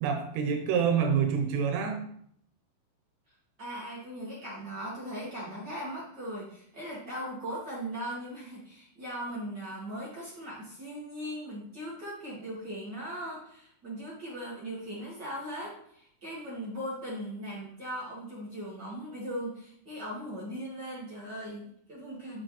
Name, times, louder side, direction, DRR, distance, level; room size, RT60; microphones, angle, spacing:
voice 1, 0.0-2.0, right 7 dB, 85° right, 4 dB, 2.9 m, -27 dB
voice 2, 3.3-22.4, equal, 50° right, -6 dB, 1.3 m, -39 dB
6.8 x 6.3 x 3.2 m, 0.66 s
omnidirectional pair, 4.8 m